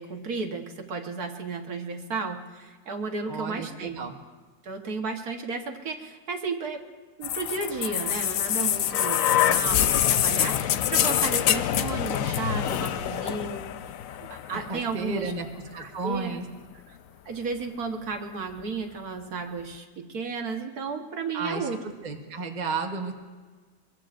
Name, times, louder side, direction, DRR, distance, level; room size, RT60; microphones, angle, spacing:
voice 1, 0.0-4.1 4.6-6.8 7.2-13.6 14.2-15.3 15.8-16.4 16.9-17.0 17.3-21.8, right 4 dB, 60° right, 4 dB, 1.8 m, -33 dB
voice 2, 3.3-4.1 14.5-15.4 15.7-16.4 21.3-21.7 22.0-23.1, right 4 dB, 30° right, 3 dB, 1.2 m, -32 dB
sound 1, 7.2-15.1 16.2-16.3, left 11 dB, 70° left, 0.8 m, -25 dB
24.0 x 22.5 x 2.5 m, 1.4 s
omnidirectional pair, 1.9 m